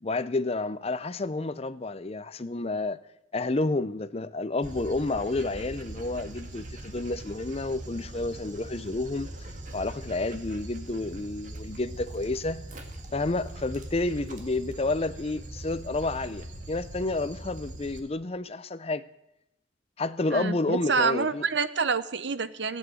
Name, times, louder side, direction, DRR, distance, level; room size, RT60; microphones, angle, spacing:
voice 1, 0.0-3.0 3.3-9.3 9.7-12.7 13.1-19.1 20.0-21.4, left 2 dB, 30° left, 0.6 m, -30 dB
Dog, 4.6-18.0, right 1 dB, 40° right, 1.9 m, -41 dB
voice 2, 20.3-22.8, right 5 dB, 65° right, 0.8 m, -27 dB
15.5 x 8.3 x 9.2 m
head